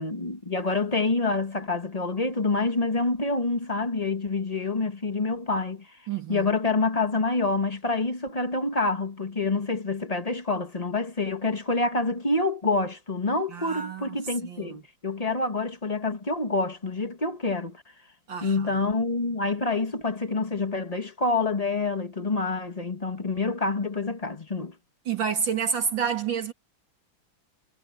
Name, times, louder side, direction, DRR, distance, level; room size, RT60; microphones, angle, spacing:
voice 1, 0.0-5.9 6.3-17.8 18.4-24.7, left 3 dB, 20° left, 1.5 m, -27 dB
voice 2, 6.1-6.5 13.5-14.2 14.4-14.8 18.3-18.8 25.1-26.5, right 7 dB, 70° right, 2.8 m, -29 dB
omnidirectional pair, 2.2 m